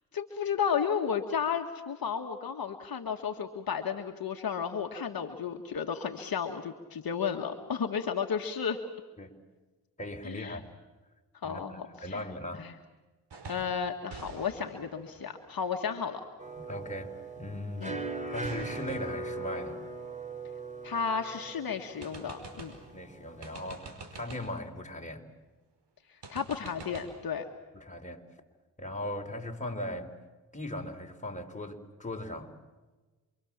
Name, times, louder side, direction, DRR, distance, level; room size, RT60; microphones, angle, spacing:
voice 1, 0.1-8.8 10.2-10.6 11.4-12.2 12.6-12.7 13.5-16.2 17.8-18.0 20.8-22.7 26.1-27.5, left 6 dB, 55° left, 4 dB, 1.8 m, -33 dB
voice 2, 10.0-10.7 11.4-12.7 16.6-17.1 17.4-18.0 18.3-19.8 22.9-25.2 27.7-28.2 28.8-30.1 30.5-32.5, left 1 dB, 15° left, 2 dB, 4.1 m, -38 dB
sound 1, 13.3-13.8 14.1-16.7 18.4-21.1 21.5-21.6 22.0-22.9 23.4-24.6 26.2-27.1, right 3 dB, 70° right, 5.3 m, -48 dB
sound 2, 16.4-23.8, right 3 dB, 15° right, 4.2 m, -40 dB
28.0 x 24.0 x 7.5 m, 1.3 s
supercardioid pair, 45°, 42 cm